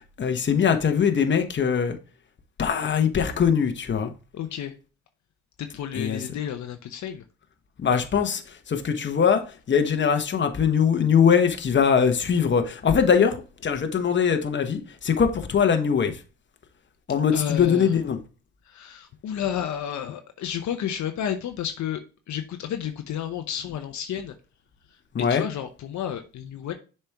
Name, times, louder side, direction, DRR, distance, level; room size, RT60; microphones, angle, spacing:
voice 1, 0.0-2.0 2.6-4.1 5.9-6.2 7.8-8.4 8.7-16.2 17.1-18.2 25.1-25.4, left 7 dB, 40° left, 1.1 m, -22 dB
voice 2, 4.3-4.7 5.6-7.2 17.3-17.9 18.7-22.0 22.3-24.3 25.3-26.7, left 9 dB, 65° left, 0.8 m, -31 dB
6.8 x 4.4 x 3.4 m
cardioid pair, 90°, 30 cm